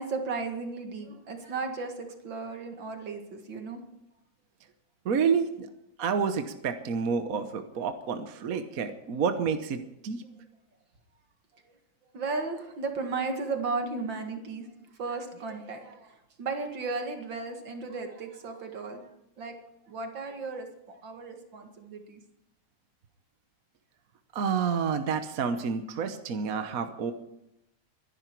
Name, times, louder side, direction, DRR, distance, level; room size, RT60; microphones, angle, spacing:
voice 1, 0.0-3.8 12.1-14.7 15.0-19.1 19.4-19.6 19.9-22.2, right 4 dB, 70° right, 4 dB, 2.6 m, -35 dB
voice 2, 5.0-5.7 6.0-10.2 24.3-27.1, right 6 dB, 55° right, 8 dB, 1.3 m, -29 dB
23.5 x 11.0 x 4.6 m, 0.85 s
omnidirectional pair, 2.1 m